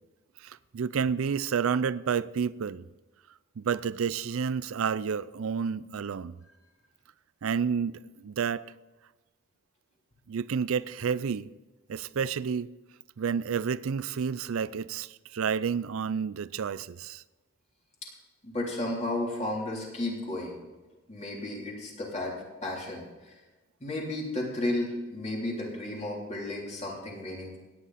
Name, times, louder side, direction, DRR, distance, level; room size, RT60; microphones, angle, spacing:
voice 1, 0.4-2.9 3.6-6.3 7.4-8.7 10.3-11.5 11.9-12.7 13.2-17.2, right 6 dB, 75° right, 0.4 m, -30 dB
voice 2, 18.4-20.6 21.1-22.3 22.6-23.0 23.8-27.6, left 1 dB, 30° left, 3.4 m, -33 dB
17.0 x 10.0 x 4.2 m
head